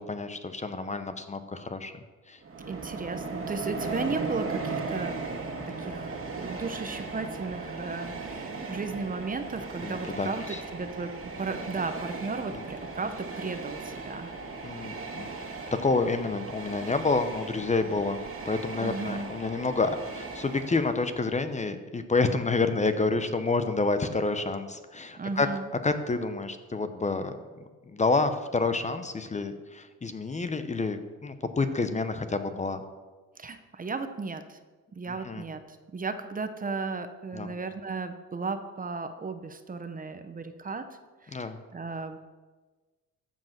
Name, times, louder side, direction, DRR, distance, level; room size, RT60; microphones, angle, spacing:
voice 1, 0.0-1.9 2.3-2.4 9.8-10.6 12.5-12.6 14.6-15.3 15.7-18.2 18.5-25.5 25.8-27.4 27.9-32.8 35.1-35.4 37.3-37.5 41.3-41.6, left 3 dB, 25° left, 9 dB, 0.8 m, -29 dB
Train, 2.4-21.3, right 3 dB, 45° right, 2.0 m, -37 dB
voice 2, 2.7-5.2 5.7-11.1 11.4-14.3 18.8-19.3 25.2-25.7 33.4-34.6 34.9-40.9 41.2-41.4 41.7-42.2, right 4 dB, 30° right, 9 dB, 0.8 m, -35 dB
14.0 x 5.2 x 5.9 m, 1.3 s
cardioid pair, 90°, 30 cm